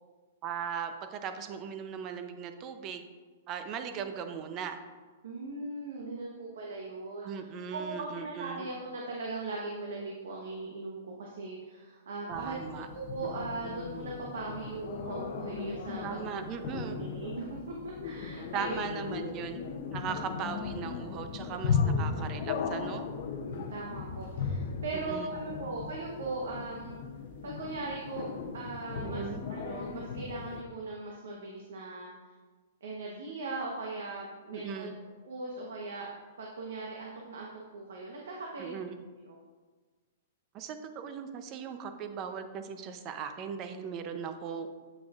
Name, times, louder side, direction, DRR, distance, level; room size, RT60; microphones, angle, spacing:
voice 1, 0.4-3.1 3.5-4.8 7.2-8.7 12.3-12.9 16.0-17.0 18.5-19.6 19.9-23.0 24.9-25.3 29.0-29.4 34.5-34.9 38.6-38.9 40.5-44.7, right 7 dB, 30° right, 8 dB, 0.5 m, -38 dB
voice 2, 5.2-16.3 16.7-19.1 23.4-27.0 27.4-28.3 28.5-32.1 32.8-34.9 35.3-36.1 36.4-38.8 39.2-39.4, right 3 dB, 85° right, -2 dB, 1.0 m, -39 dB
sound 1, 12.3-30.6, left 5 dB, 55° left, 0.6 m, -36 dB
7.9 x 6.1 x 2.4 m, 1.4 s
hypercardioid pair, 155°, 0 cm